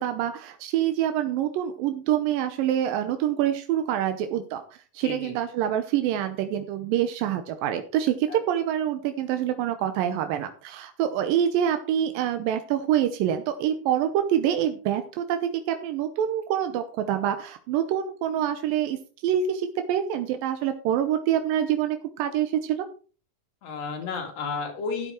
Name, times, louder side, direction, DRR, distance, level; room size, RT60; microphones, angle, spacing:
voice 1, 0.0-4.6 4.9-19.0 19.2-22.9, right 10 dB, 90° right, 8 dB, 2.6 m, -26 dB
voice 2, 5.0-5.3 8.3-8.4 23.6-25.1, left 5 dB, 90° left, 4 dB, 4.1 m, -32 dB
12.5 x 8.4 x 4.6 m, 0.39 s
omnidirectional pair, 3.9 m